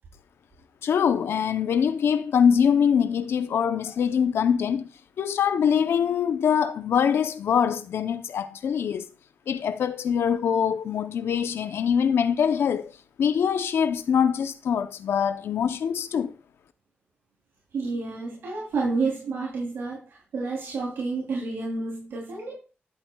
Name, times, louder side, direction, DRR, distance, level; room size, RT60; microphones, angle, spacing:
voice 1, 0.8-4.9 5.2-9.1 9.5-12.9 13.2-16.4, left 7 dB, 90° left, 0.6 m, -23 dB
voice 2, 17.7-22.6, right 3 dB, 90° right, 2.8 m, -30 dB
11.0 x 8.4 x 2.2 m
cardioid pair, 65°, 4 cm